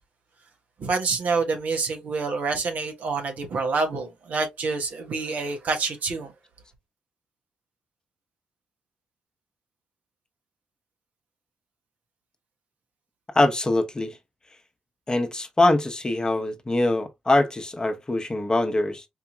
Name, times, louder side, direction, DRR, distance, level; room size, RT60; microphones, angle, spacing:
voice 1, 0.8-6.3, right 4 dB, 65° right, 1.2 m, -27 dB
voice 2, 13.3-14.2 15.1-19.1, left 2 dB, 25° left, 1.0 m, -23 dB
4.7 x 2.8 x 2.3 m
hypercardioid pair, 45°, 3 cm